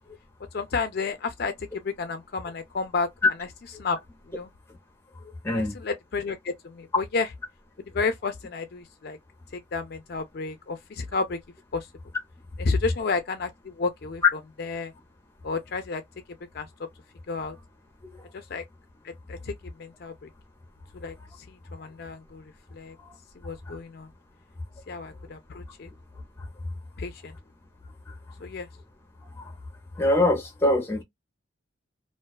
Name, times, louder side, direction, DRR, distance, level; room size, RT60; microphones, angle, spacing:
voice 1, 0.5-1.5 1.8-3.5 3.8-4.0 4.3-4.5 5.5-7.3 7.9-9.2 9.5-11.4 11.7-11.9 12.6-14.9 15.4-16.0 16.5-16.7 17.3-17.6 18.3-18.6 19.0-19.5 19.8-20.3 21.0-23.0 23.4-24.1 24.9-25.9 27.0-27.3 28.4-28.7, left 4 dB, 50° left, 0.4 m, -31 dB
voice 2, 5.4-5.8 23.1-23.2 29.4-29.5 30.0-31.0, left 1 dB, 15° left, 0.7 m, -23 dB
2.4 x 2.3 x 2.2 m
head